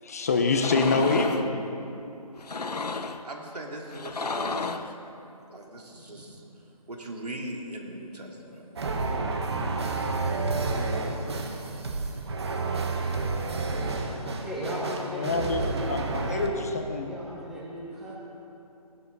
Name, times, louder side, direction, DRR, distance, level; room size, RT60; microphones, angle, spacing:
voice 1, 0.0-1.6 13.6-14.2 15.1-15.6 15.9-17.1, left 3 dB, 25° left, 5 dB, 0.7 m, -26 dB
sound 1, 0.5-1.5 2.4-3.2 3.9-4.9, left 4 dB, 90° left, 0.8 m, -32 dB
voice 2, 3.2-5.1 5.5-6.4 6.9-8.6 11.5-11.6 12.0-12.1 15.5-15.6, right 1 dB, 80° right, 0 dB, 2.9 m, -41 dB
sound 2, 8.8-16.5, right 3 dB, 45° right, 1.3 m, -30 dB
voice 3, 14.4-16.6 17.1-18.2, equal, ahead, -7 dB, 0.9 m, -37 dB
18.5 x 12.0 x 4.0 m, 2.8 s
figure-of-eight pair, 165°, 20 cm